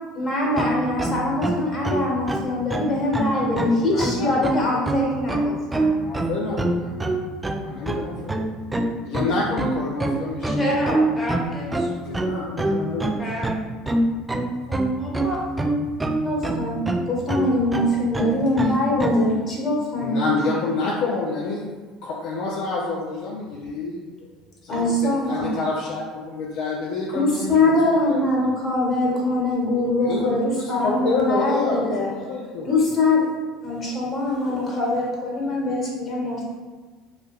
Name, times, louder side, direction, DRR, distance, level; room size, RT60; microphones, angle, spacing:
voice 1, 0.1-5.9 16.2-20.5 24.7-25.5 27.1-30.4 30.7-32.1 32.6-33.2 33.6-36.4, left 2 dB, 40° left, -3 dB, 1.4 m, -23 dB
sound 1, 0.6-19.3, right 2 dB, 15° right, 0.3 m, -24 dB
voice 2, 3.3-4.8 6.0-7.0 7.6-8.4 9.0-10.8 12.0-13.5 18.5-18.7 20.0-21.6 22.0-24.0 24.6-28.2 30.0-31.8 32.1-32.7, left 3 dB, 65° left, -3 dB, 0.4 m, -28 dB
voice 3, 10.5-11.9 13.2-13.5 14.7-15.4, equal, 10° left, -5 dB, 1.0 m, -29 dB
3.9 x 2.7 x 2.4 m, 1.3 s
hypercardioid pair, 65°, 0 cm